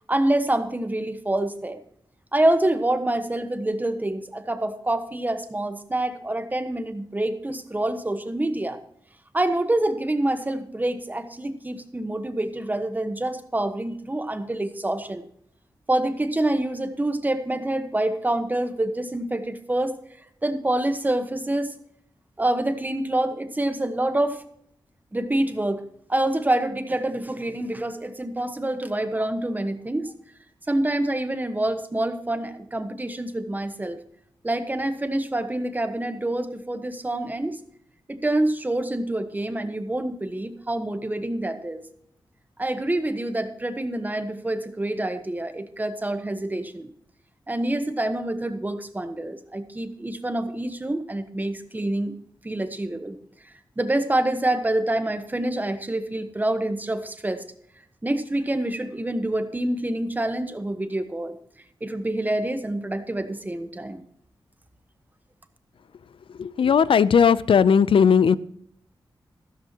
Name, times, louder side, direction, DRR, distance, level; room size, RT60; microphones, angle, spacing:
voice 1, 0.1-1.8 2.3-8.8 9.3-15.2 15.9-20.0 20.4-21.7 22.4-24.4 25.1-25.8 26.1-30.1 30.7-34.0 34.4-37.6 38.1-41.8 42.6-46.9 47.5-52.2 52.4-53.2 53.8-57.5 58.0-61.4 61.8-64.0, right 1 dB, 20° right, 9 dB, 1.2 m, -26 dB
voice 2, 66.4-68.4, left 7 dB, 75° left, 18 dB, 0.5 m, -17 dB
14.5 x 13.5 x 2.9 m, 0.69 s
wide cardioid pair, 95°, 9 cm